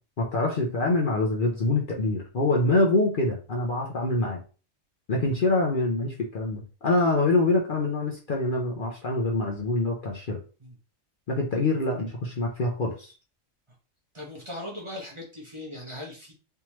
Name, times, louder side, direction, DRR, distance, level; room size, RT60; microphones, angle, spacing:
voice 1, 0.2-4.4 5.1-10.4 11.3-13.1, left 2 dB, 50° left, -1 dB, 0.8 m, -25 dB
voice 2, 14.1-16.3, left 1 dB, 25° right, -3 dB, 1.0 m, -39 dB
3.4 x 3.0 x 3.0 m, 0.35 s
omnidirectional pair, 1.3 m